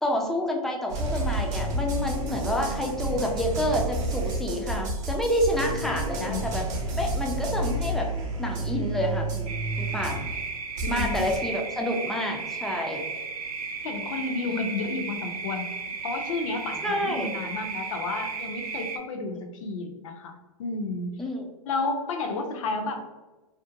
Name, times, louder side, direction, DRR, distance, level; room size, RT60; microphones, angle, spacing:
voice 1, 0.0-6.6 6.9-8.1 8.4-10.3 10.9-13.0 14.4-14.7 16.8-17.3 21.2-21.5, equal, ahead, 0 dB, 0.3 m, -28 dB
sound 1, 0.9-10.4 10.8-11.4, right 1 dB, 50° right, 0.8 m, -30 dB
voice 2, 5.8-6.4 10.8-11.3 13.8-21.2 21.7-23.0, left 3 dB, 60° left, 4 dB, 0.6 m, -32 dB
sound 2, 9.5-19.0, right 5 dB, 85° right, 0.5 m, -35 dB
2.6 x 2.1 x 2.5 m, 1.2 s
hypercardioid pair, 110°, 19 cm